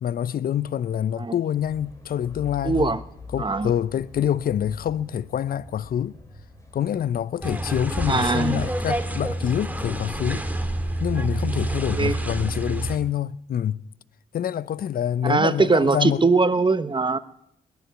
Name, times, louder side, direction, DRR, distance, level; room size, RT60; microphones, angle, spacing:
voice 1, 0.0-3.0 3.3-6.2 6.7-10.4 11.0-13.8 14.3-16.2, left 10 dB, 55° left, 0.6 m, -26 dB
sound 1, 1.6-12.1, left 3 dB, 15° left, 4.7 m, -45 dB
voice 2, 2.6-3.0 3.4-3.7 8.1-8.7 11.9-12.2 15.2-17.2, right 3 dB, 25° right, 1.1 m, -21 dB
sound 2, 7.4-13.0, right 1 dB, 10° right, 2.2 m, -28 dB
21.0 x 7.3 x 9.4 m
hypercardioid pair, 45°, 18 cm